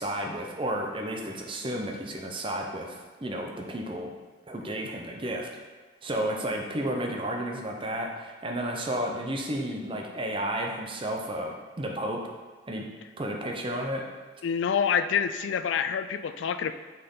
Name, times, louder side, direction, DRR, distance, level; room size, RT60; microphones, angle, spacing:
voice 1, 0.0-4.1 4.5-5.5 6.0-12.2 12.7-12.8 13.2-14.1, right 1 dB, 25° right, 1 dB, 0.7 m, -32 dB
voice 2, 14.4-16.7, left 7 dB, 75° left, 11 dB, 0.3 m, -27 dB
6.5 x 4.2 x 3.8 m, 1.3 s
head